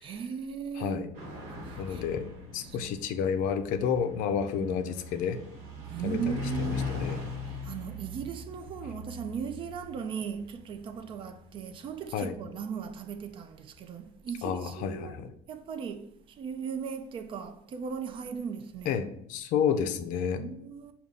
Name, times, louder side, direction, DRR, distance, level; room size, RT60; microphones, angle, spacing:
voice 1, 0.0-1.1 1.6-2.0 2.6-2.9 4.5-4.9 5.8-6.9 7.5-19.0 20.4-20.9, right 6 dB, 35° right, 0.3 m, -38 dB
voice 2, 0.8-1.1 1.8-5.4 6.0-6.2 6.9-7.2 12.1-12.3 14.4-15.3 18.9-19.0 19.3-20.4, left 7 dB, 65° left, 0.5 m, -30 dB
sound 1, 1.1-12.1, left 3 dB, 75° right, 1.2 m, -40 dB
5.2 x 2.3 x 3.6 m
cardioid pair, 150°, 15 cm